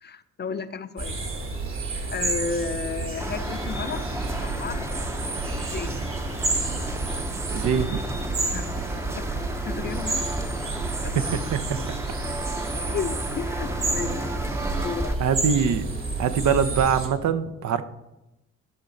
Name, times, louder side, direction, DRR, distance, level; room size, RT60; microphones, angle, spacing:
voice 1, 0.0-1.2 2.1-4.1 4.4-4.9 5.5-6.1 8.5-8.7 9.1-9.3 9.6-10.2 11.0-11.2 12.7-14.2 14.7-15.1, left 5 dB, 35° left, 11 dB, 0.6 m, -33 dB
sound 1, 1.0-17.1, right 3 dB, 45° right, 1.9 m, -30 dB
sound 2, 3.2-15.2, right 1 dB, 10° right, 0.7 m, -32 dB
voice 2, 7.5-8.0 11.2-11.8 15.2-15.9 16.2-17.8, right 7 dB, 70° right, 11 dB, 0.8 m, -23 dB
13.5 x 5.8 x 3.9 m, 0.96 s
cardioid pair, 90°, 30 cm